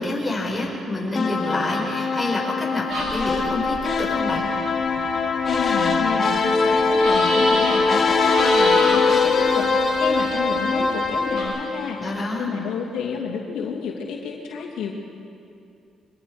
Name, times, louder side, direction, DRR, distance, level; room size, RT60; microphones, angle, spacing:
voice 1, 0.0-4.5 12.0-12.5, left 2 dB, 10° left, -4 dB, 6.0 m, -27 dB
sound 1, 1.2-12.4, left 4 dB, 45° left, 2.3 m, -22 dB
sound 2, 2.9-11.4, right 1 dB, 75° right, 5.7 m, -32 dB
voice 2, 5.5-14.9, left 6 dB, 85° left, -2 dB, 2.6 m, -30 dB
24.0 x 21.5 x 5.2 m, 2.6 s
cardioid pair, 90°, 0 cm